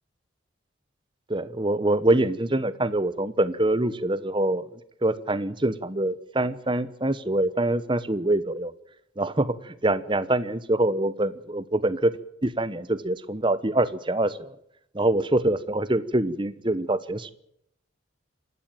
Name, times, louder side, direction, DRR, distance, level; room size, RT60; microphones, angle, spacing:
voice 1, 1.3-8.7 9.2-12.1 12.4-14.5 14.9-17.3, right 1 dB, 25° right, 15 dB, 1.1 m, -25 dB
27.0 x 12.5 x 9.1 m, 0.74 s
head